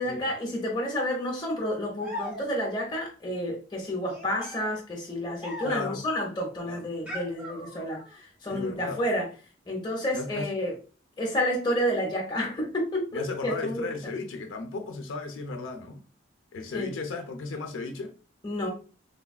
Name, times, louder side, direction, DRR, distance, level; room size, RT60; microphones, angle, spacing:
voice 1, 0.0-9.3 9.7-10.7 11.2-13.9 16.7-16.9 18.4-18.7, equal, 20° left, 0.8 m, -30 dB
sound 1, 2.0-2.8 4.0-6.0 7.1-8.2, equal, 5° right, 1.0 m, -40 dB
voice 2, 5.6-6.1 6.6-6.9 8.5-9.0 10.1-10.5 13.1-16.0 16.5-18.2, left 3 dB, 80° left, 0.5 m, -35 dB
3.4 x 2.4 x 2.3 m
head